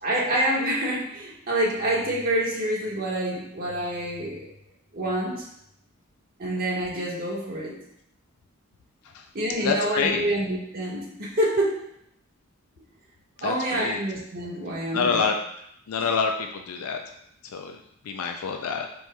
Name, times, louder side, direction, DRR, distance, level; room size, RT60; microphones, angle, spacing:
voice 1, 0.0-4.4 4.9-5.5 6.4-7.8 9.3-11.8 13.4-15.3 16.0-16.1, right 1 dB, 45° right, -5 dB, 1.4 m, -27 dB
voice 2, 9.6-10.3 13.4-14.0 14.9-15.4 15.9-17.0 17.5-17.8 18.1-18.9, left 5 dB, 80° left, 4 dB, 0.4 m, -26 dB
5.3 x 4.5 x 2.2 m, 0.75 s
head